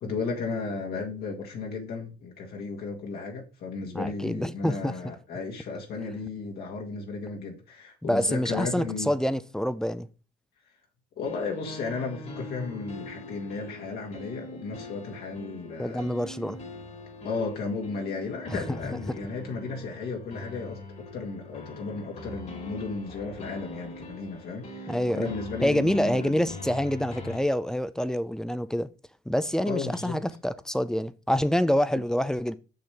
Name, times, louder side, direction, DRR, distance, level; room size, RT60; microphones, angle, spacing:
voice 1, 0.0-9.1 11.2-16.1 17.2-26.4 29.7-30.2, left 4 dB, 65° left, 1.8 m, -34 dB
voice 2, 3.9-4.9 8.0-10.1 15.8-16.6 18.5-18.6 19.1-19.2 24.9-25.3 25.6-28.9 29.3-32.6, equal, 5° left, 0.5 m, -27 dB
sound 1, 11.2-27.4, left 2 dB, 45° left, 2.0 m, -42 dB
6.6 x 6.2 x 3.4 m
cardioid pair, 110°, 17 cm